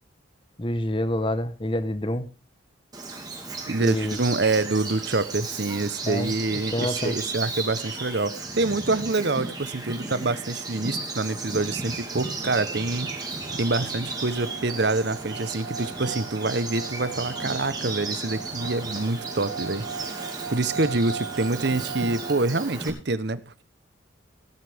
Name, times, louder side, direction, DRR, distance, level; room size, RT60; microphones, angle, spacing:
voice 1, 0.6-2.3 3.8-4.2 6.1-6.4 6.7-7.2, left 1 dB, 25° left, 13 dB, 1.0 m, -27 dB
Bird vocalization bird call bird song, 2.9-22.9, right 3 dB, 20° right, 2.7 m, -35 dB
voice 2, 3.7-13.1 13.5-19.9 20.5-23.6, right 2 dB, 55° right, 15 dB, 0.9 m, -26 dB
sound 1, 10.1-10.2 10.6-11.0 11.4-22.4, right 6 dB, 90° right, 0.8 m, -39 dB
17.5 x 10.0 x 3.5 m, 0.33 s
head